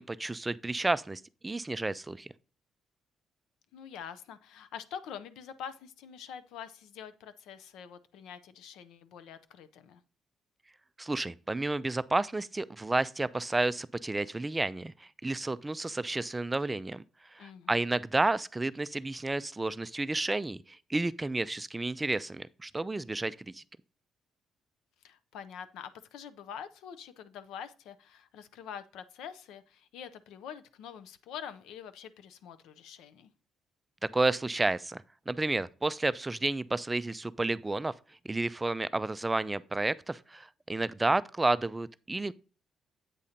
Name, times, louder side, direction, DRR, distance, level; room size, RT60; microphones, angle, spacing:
voice 1, 0.0-2.3 11.0-14.9 15.2-17.0 17.3-20.6 20.9-23.6 34.1-37.9 38.3-42.3, right 2 dB, 15° right, 0.3 m, -31 dB
voice 2, 3.7-10.0 17.4-17.9 25.0-33.3, left 8 dB, 90° left, 0.5 m, -45 dB
8.3 x 2.8 x 5.0 m
cardioid pair, 90°, 0 cm